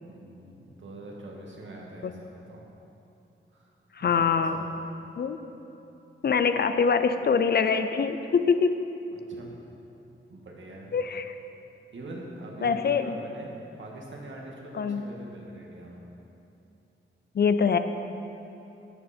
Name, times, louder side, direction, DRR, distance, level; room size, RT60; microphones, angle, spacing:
voice 1, 0.0-2.6 3.5-3.7 4.0-4.7 9.1-9.5 10.3-10.9 11.9-13.5 13.8-16.0, right 1 dB, 65° right, -2 dB, 2.0 m, -43 dB
voice 2, 4.0-4.6 5.2-5.4 6.2-8.8 10.9-11.3 12.6-13.2 14.7-15.0 17.3-17.8, left 5 dB, 50° left, 9 dB, 0.5 m, -24 dB
12.0 x 9.9 x 4.4 m, 2.9 s
wide cardioid pair, 145°, 21 cm